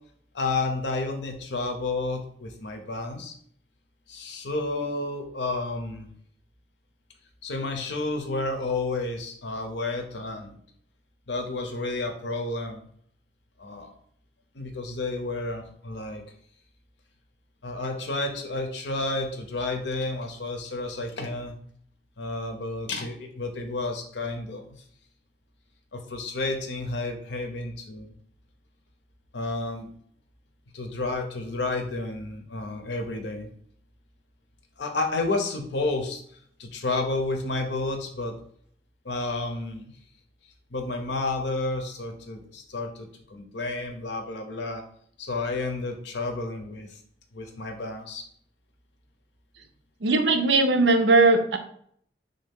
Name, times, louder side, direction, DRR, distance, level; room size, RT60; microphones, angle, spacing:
voice 1, 0.3-3.3 4.1-6.1 7.4-10.6 11.3-12.9 13.6-14.0 14.5-16.2 17.6-21.6 22.2-24.7 25.9-28.1 29.3-29.9 30.7-33.5 34.8-36.2 36.6-38.4 39.0-39.9 40.7-44.8 45.2-47.0 47.3-48.2, left 2 dB, 90° left, 5 dB, 0.7 m, -31 dB
voice 2, 50.0-51.6, right 3 dB, 85° right, 7 dB, 0.5 m, -19 dB
3.5 x 2.7 x 3.6 m, 0.63 s
head